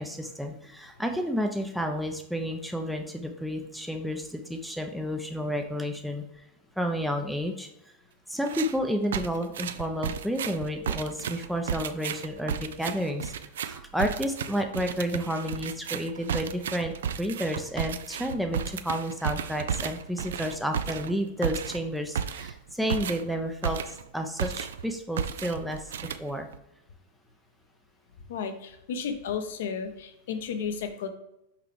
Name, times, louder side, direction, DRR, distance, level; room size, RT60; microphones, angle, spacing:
voice 1, 0.0-6.2 6.8-7.7 8.3-26.5, equal, ahead, 3 dB, 0.6 m, -31 dB
sound 1, 8.4-8.8 9.1-24.1 24.4-24.9 25.2-26.6, right 8 dB, 60° right, 0.4 m, -33 dB
voice 2, 28.3-31.1, left 6 dB, 55° left, 8 dB, 0.8 m, -33 dB
5.9 x 5.8 x 3.2 m, 0.83 s
figure-of-eight pair, 90°, 0 cm